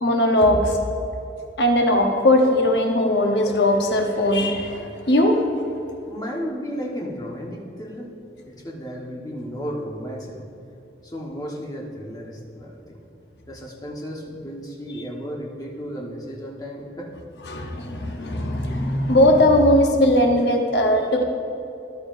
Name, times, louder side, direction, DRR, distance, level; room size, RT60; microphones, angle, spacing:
voice 1, 0.0-0.8 1.6-5.5 17.5-21.2, left 1 dB, 65° left, 3 dB, 1.0 m, -19 dB
voice 2, 6.1-8.1 8.4-10.4 11.0-13.0 13.5-17.1, equal, 20° left, -2 dB, 1.3 m, -34 dB
13.5 x 11.0 x 2.7 m, 2.8 s
head